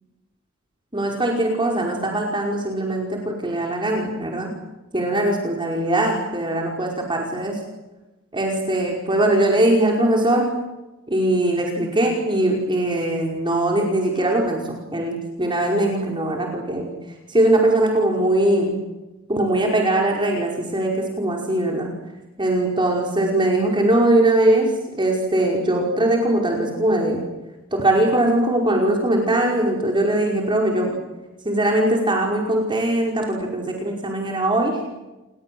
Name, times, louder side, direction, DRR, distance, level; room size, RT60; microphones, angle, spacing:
voice 1, 0.9-4.5 4.9-7.6 8.3-10.5 11.1-16.9 17.3-18.8 19.3-21.9 22.4-27.2 27.7-31.0 31.4-34.8, right 1 dB, 25° right, 0 dB, 5.3 m, -21 dB
29.5 x 23.0 x 8.0 m, 1.0 s
head